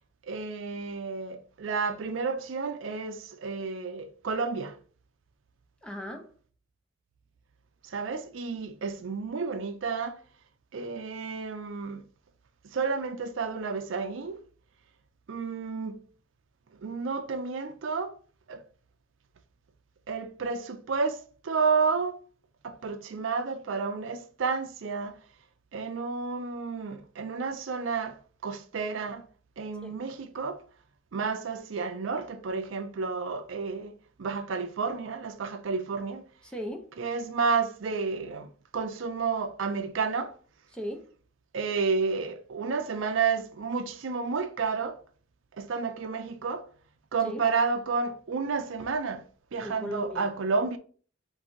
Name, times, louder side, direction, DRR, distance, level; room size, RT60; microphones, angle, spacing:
voice 1, 0.2-4.8 7.8-10.2 10.7-12.0 12.7-14.4 15.3-16.1 16.7-18.1 18.5-18.6 20.1-22.2 22.6-25.2 25.7-29.2 29.6-30.6 31.1-33.9 34.2-36.2 37.0-40.4 41.5-45.0 45.6-46.7 47.1-49.3 49.5-50.8, right 5 dB, 65° right, 0.5 m, -31 dB
voice 2, 5.8-6.3 29.8-30.0 36.4-36.9 40.7-41.1 47.2-47.4 49.6-50.4, equal, 5° left, 0.6 m, -37 dB
3.8 x 2.6 x 4.4 m
head